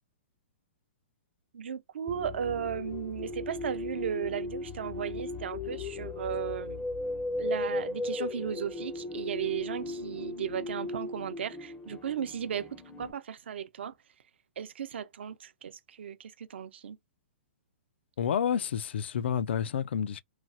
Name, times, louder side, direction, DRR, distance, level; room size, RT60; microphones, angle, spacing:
voice 1, 1.5-6.8 7.4-13.9 14.6-17.0, right 8 dB, 75° right, 0.6 m, -36 dB
sound 1, 2.1-13.1, left 2 dB, 10° left, 0.4 m, -37 dB
voice 2, 18.2-20.2, left 8 dB, 75° left, 0.3 m, -29 dB
3.1 x 2.0 x 2.6 m
hypercardioid pair, 150°, 6 cm